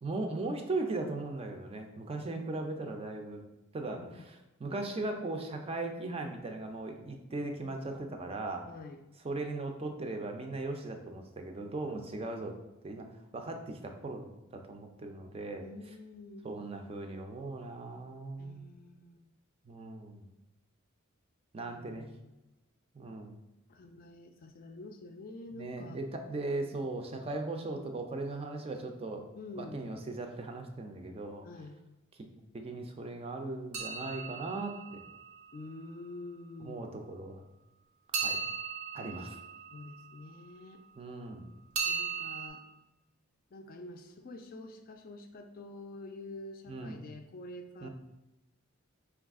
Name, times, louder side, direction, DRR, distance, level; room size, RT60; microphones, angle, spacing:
voice 1, 0.0-3.4 3.7-8.7 9.2-12.5 12.8-15.7 16.4-18.7 19.7-20.3 21.5-22.1 22.9-23.4 25.5-29.3 29.6-31.5 32.5-35.0 36.6-37.4 38.2-38.4 38.9-39.4 41.0-41.4 46.7-47.0 47.8-47.9, right 2 dB, 30° right, 4 dB, 0.4 m, -38 dB
voice 2, 3.8-4.2 8.7-9.0 11.8-12.3 15.6-16.5 18.4-19.2 21.7-22.3 23.7-26.0 26.6-26.8 29.4-29.9 31.4-31.8 35.5-36.8 39.7-40.8 41.8-42.6 43.5-47.9, left 2 dB, 45° left, 5 dB, 0.4 m, -47 dB
sound 1, 33.7-35.8 38.1-40.5 41.8-42.5, right 6 dB, 85° right, 0.8 m, -37 dB
4.7 x 2.4 x 3.5 m, 0.98 s
head